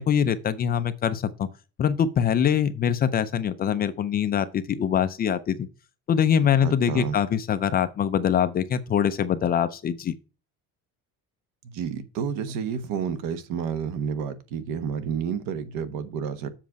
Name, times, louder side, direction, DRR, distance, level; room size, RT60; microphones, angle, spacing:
voice 1, 0.0-1.5 1.8-5.7 6.1-10.1, left 8 dB, 30° left, 0.4 m, -23 dB
voice 2, 6.6-7.2 11.6-16.5, right 7 dB, 85° right, 1.2 m, -30 dB
7.5 x 5.2 x 4.7 m
cardioid pair, 175°, 33 cm